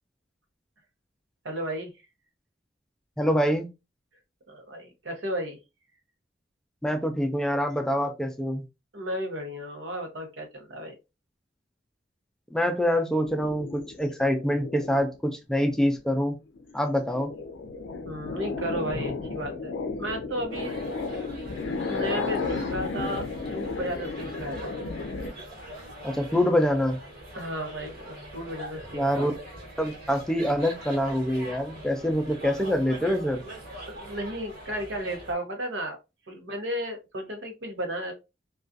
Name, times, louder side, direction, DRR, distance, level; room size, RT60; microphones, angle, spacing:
voice 1, 1.4-1.9 4.5-5.6 8.9-11.0 18.0-20.7 21.8-23.2 23.5-24.7 27.3-29.3 33.9-36.0 36.3-38.1, equal, 85° right, 0.7 m, -34 dB
voice 2, 3.2-3.7 6.8-8.6 12.5-16.4 16.7-17.3 26.0-27.0 28.9-29.3 29.8-33.4, equal, 5° left, 0.3 m, -25 dB
sound 1, 13.2-15.2 15.7-16.1 16.5-25.3, left 3 dB, 85° left, 0.4 m, -33 dB
sound 2, 20.5-35.3, right 1 dB, 55° right, 1.2 m, -43 dB
2.3 x 2.3 x 2.5 m
head